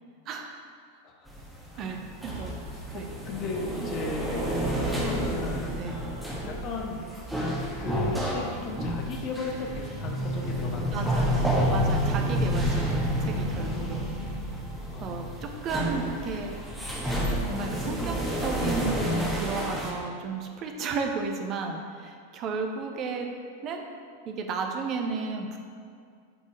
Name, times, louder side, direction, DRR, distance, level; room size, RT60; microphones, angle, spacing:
sound 1, 1.3-19.9, equal, 5° right, 1.5 m, -30 dB
voice 1, 1.8-3.1 5.8-6.0 10.9-11.4 11.7-14.2 15.0-16.5 17.4-23.3 23.6-23.8 24.3-25.6, right 4 dB, 35° right, 4 dB, 0.8 m, -33 dB
voice 2, 2.9-4.4 4.7-5.8 6.4-7.0 7.7-11.3 14.9-15.4, left 3 dB, 35° left, 1 dB, 1.1 m, -36 dB
11.0 x 4.5 x 3.1 m, 2.2 s
figure-of-eight pair, 90°, 0 cm